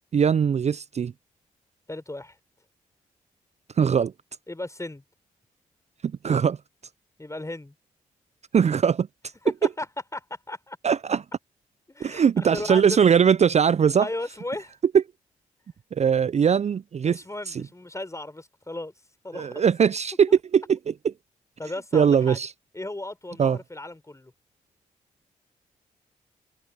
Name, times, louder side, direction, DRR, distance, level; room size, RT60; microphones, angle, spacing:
voice 1, 0.1-1.1 3.8-4.1 6.0-6.6 8.5-9.1 10.8-11.2 12.0-14.1 15.9-17.2 17.5-17.6 19.3-20.8 21.9-22.5 23.4-23.6, right 7 dB, 45° right, 0.5 m, -21 dB
voice 2, 1.9-2.4 4.5-5.0 7.2-7.7 9.4-9.9 10.1-10.8 11.9-13.0 14.0-14.7 17.0-18.9 19.2-19.7 21.6-22.4 22.7-24.3, left 2 dB, 20° left, 4.5 m, -35 dB
supercardioid pair, 40°, 16 cm